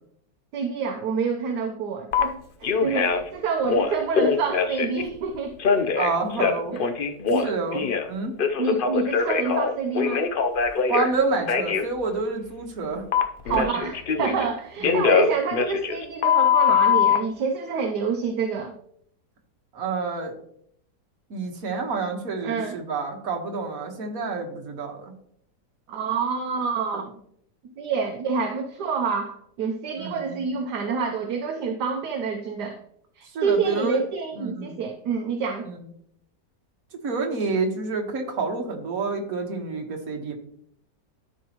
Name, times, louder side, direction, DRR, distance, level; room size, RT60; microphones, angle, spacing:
voice 1, 0.5-5.5 5.8-5.9 6.7-6.8 7.3-7.5 8.6-10.3 13.4-18.7 22.4-22.8 25.9-27.1 27.6-32.8 33.1-35.7, right 5 dB, 70° right, 4 dB, 1.3 m, -27 dB
Telephone, 2.1-2.2 2.6-3.3 3.6-5.0 5.6-8.1 8.4-11.1 11.5-11.8 13.1-14.5 14.8-17.2, left 6 dB, 85° left, 0.4 m, -22 dB
voice 2, 5.9-6.8 7.4-8.4 10.9-13.0 14.3-14.5 14.8-15.0 19.7-20.3 21.3-25.1 30.0-30.4 33.3-34.0 34.4-34.8 35.7-35.8 37.0-40.4, right 4 dB, 55° right, 2 dB, 1.7 m, -28 dB
13.0 x 5.3 x 2.9 m, 0.67 s
omnidirectional pair, 1.8 m